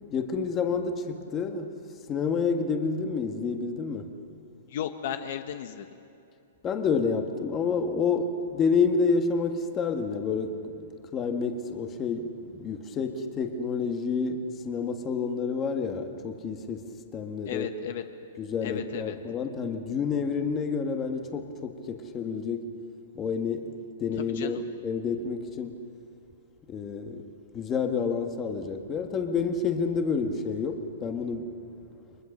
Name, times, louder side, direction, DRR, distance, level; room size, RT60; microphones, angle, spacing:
voice 1, 0.1-1.7 2.1-4.2 6.6-17.7 18.4-22.7 23.1-25.9 26.7-27.2 27.5-31.6, left 5 dB, 20° left, 5 dB, 1.6 m, -29 dB
voice 2, 4.7-5.9 17.5-18.0 18.6-19.1 24.4-24.6, left 10 dB, 55° left, 8 dB, 1.3 m, -34 dB
29.5 x 24.0 x 6.7 m, 2.6 s
hypercardioid pair, 165°, 0 cm